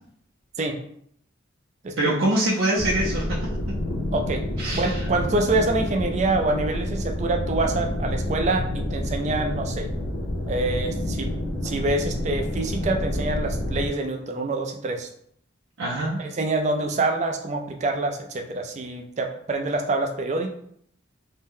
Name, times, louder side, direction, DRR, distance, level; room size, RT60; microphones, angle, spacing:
voice 1, 2.0-3.8 4.6-5.1 15.8-16.2, right 1 dB, 85° right, -4 dB, 0.5 m, -25 dB
sound 1, 2.8-13.9, left 1 dB, 80° left, 0.6 m, -28 dB
voice 2, 4.1-4.4 4.7-9.9 10.5-11.3 11.6-15.1 16.2-20.5, right 2 dB, 35° right, 4 dB, 0.3 m, -26 dB
2.6 x 2.1 x 3.6 m, 0.67 s
head